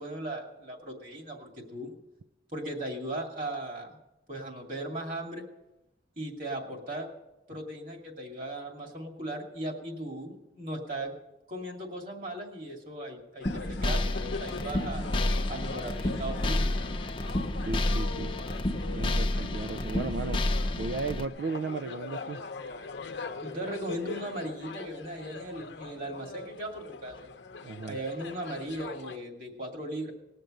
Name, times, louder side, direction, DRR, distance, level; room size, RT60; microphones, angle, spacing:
voice 1, 0.0-1.9 2.5-4.0 4.3-5.4 6.2-7.1 7.5-11.2 11.5-15.0 15.5-16.8 23.4-27.3 27.9-30.1, right 1 dB, 50° right, 2 dB, 2.4 m, -37 dB
sound 1, 13.4-29.2, left 4 dB, 80° left, 0.8 m, -42 dB
sound 2, 13.5-21.3, left 1 dB, 30° left, 0.7 m, -30 dB
voice 2, 17.6-18.4 18.9-20.4 20.7-22.4 27.6-28.0, right 4 dB, 75° right, 12 dB, 0.4 m, -35 dB
19.5 x 6.6 x 8.9 m, 0.98 s
head